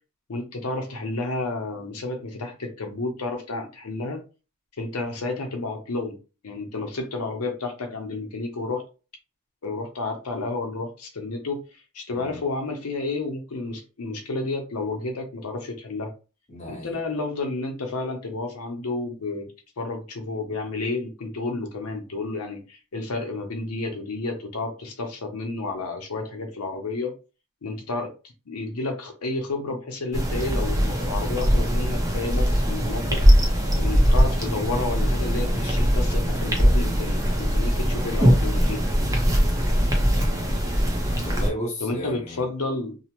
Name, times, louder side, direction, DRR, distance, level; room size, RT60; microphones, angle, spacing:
voice 1, 0.3-4.2 4.8-6.2 6.4-8.8 9.6-16.1 16.7-19.5 19.8-27.1 27.6-28.1 28.5-38.8 41.8-43.0, left 3 dB, 85° left, 0.7 m, -31 dB
voice 2, 12.1-12.4 16.5-17.0 39.6-40.2 41.2-42.4, equal, 30° left, 1.0 m, -35 dB
sound 1, 30.1-41.5, equal, 15° right, 0.5 m, -21 dB
2.7 x 2.0 x 2.9 m
head